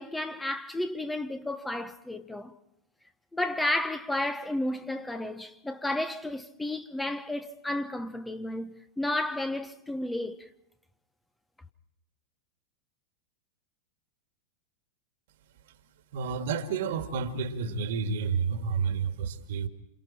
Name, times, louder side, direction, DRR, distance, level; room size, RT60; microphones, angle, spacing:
voice 1, 0.0-2.6 3.3-10.5, left 1 dB, 5° left, 1.1 m, -32 dB
voice 2, 16.1-19.7, right 5 dB, 55° right, 2.1 m, -30 dB
28.0 x 28.0 x 4.3 m
figure-of-eight pair, 90°, 0 cm